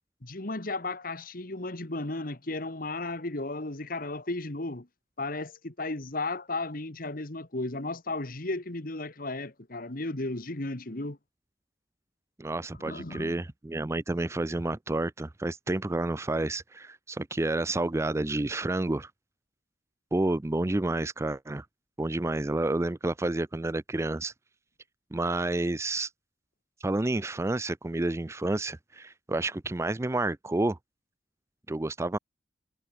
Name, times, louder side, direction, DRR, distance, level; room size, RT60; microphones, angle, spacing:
voice 1, 0.2-4.9 5.2-11.2 12.7-13.4, left 2 dB, 50° left, 1.9 m, -34 dB
voice 2, 12.4-19.1 20.1-21.6 22.0-24.3 25.1-26.1 26.8-30.8 31.7-32.2, right 2 dB, 15° right, 0.5 m, -30 dB
head